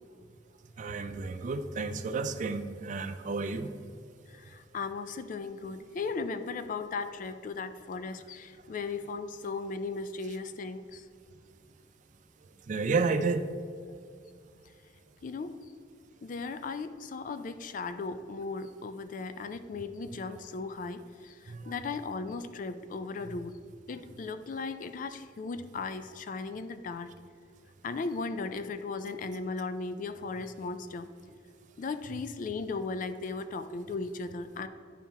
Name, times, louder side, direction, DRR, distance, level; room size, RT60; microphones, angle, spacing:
voice 1, 0.8-3.7 12.7-13.5 21.5-21.6, right 4 dB, 45° right, 10 dB, 0.4 m, -31 dB
voice 2, 4.3-11.0 15.2-15.6 16.2-23.6 23.9-27.1 27.8-31.1 31.8-34.7, left 4 dB, 45° left, 11 dB, 0.3 m, -37 dB
10.0 x 4.3 x 3.4 m, 2.2 s
head